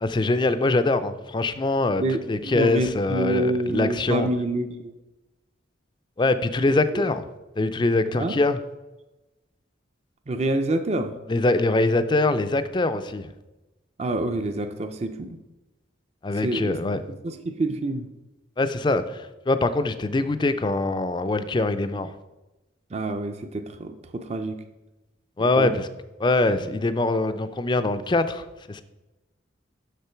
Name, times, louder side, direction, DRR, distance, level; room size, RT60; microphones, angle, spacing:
voice 1, 0.0-2.0 2.3-4.3 6.2-7.2 7.6-8.6 11.3-13.3 16.2-17.0 18.6-22.1 25.4-25.9 26.2-28.8, left 2 dB, 25° left, 0.4 m, -23 dB
voice 2, 2.0-4.9 6.9-7.1 8.1-8.4 10.3-11.1 14.0-15.4 16.4-16.8 17.2-18.1 22.9-24.6 25.6-25.7, right 2 dB, 35° right, 0.5 m, -27 dB
6.7 x 6.3 x 4.5 m
head